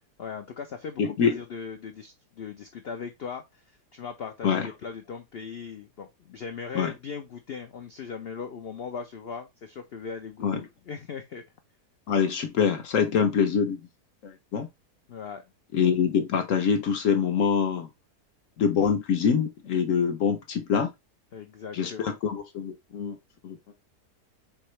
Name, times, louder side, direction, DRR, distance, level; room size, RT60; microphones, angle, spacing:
voice 1, 0.2-11.4 15.1-15.4 21.3-22.2, left 6 dB, 80° left, 0.5 m, -39 dB
voice 2, 1.0-1.4 4.4-4.7 6.7-6.9 10.4-10.6 12.1-13.8 14.2-14.7 15.7-17.9 18.6-20.9 21.7-23.1 23.4-23.6, left 6 dB, 60° left, 0.9 m, -25 dB
4.7 x 2.9 x 3.1 m
omnidirectional pair, 1.7 m